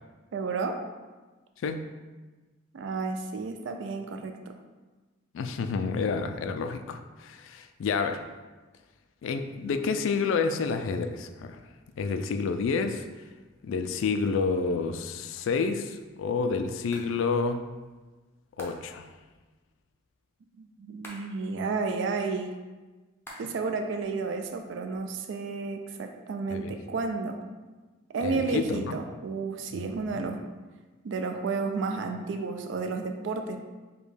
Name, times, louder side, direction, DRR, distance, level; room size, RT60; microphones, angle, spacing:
voice 1, 0.3-0.8 2.7-4.4 20.6-22.6 23.4-27.4 28.1-30.4 31.0-33.6, right 4 dB, 65° right, 5 dB, 0.3 m, -32 dB
voice 2, 5.3-8.2 9.2-11.6 12.0-13.1 13.6-17.6 18.6-19.1 26.5-26.7 28.2-29.0 29.7-29.8 30.1-30.2, left 4 dB, 70° left, 8 dB, 0.3 m, -29 dB
sound 1, 15.3-15.7 16.9-17.2 18.6-19.1 21.0-21.5 23.2-23.7 24.0-25.0, equal, 10° left, 0.5 m, -48 dB
5.1 x 2.2 x 3.2 m, 1.3 s
head